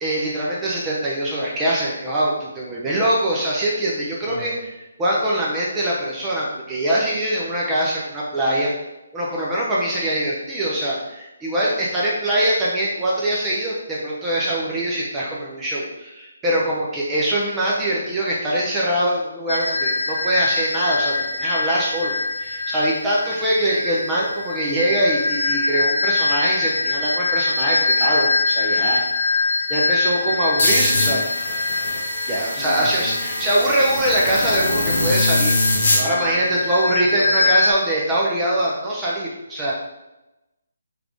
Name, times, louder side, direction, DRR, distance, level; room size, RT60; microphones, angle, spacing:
voice 1, 0.0-4.7 5.0-8.7 9.1-29.0 29.7-31.2 32.2-39.7, right 1 dB, 10° right, -6 dB, 0.5 m, -23 dB
voice 2, 4.2-4.6 32.6-33.2 35.9-36.7 37.0-37.6, left 1 dB, 25° left, -2 dB, 0.7 m, -34 dB
sound 1, 19.5-37.7, left 3 dB, 80° left, 0.4 m, -24 dB
sound 2, 30.6-36.0, left 2 dB, 60° left, 1.0 m, -23 dB
3.4 x 2.4 x 3.3 m, 0.98 s
hypercardioid pair, 155°, 0 cm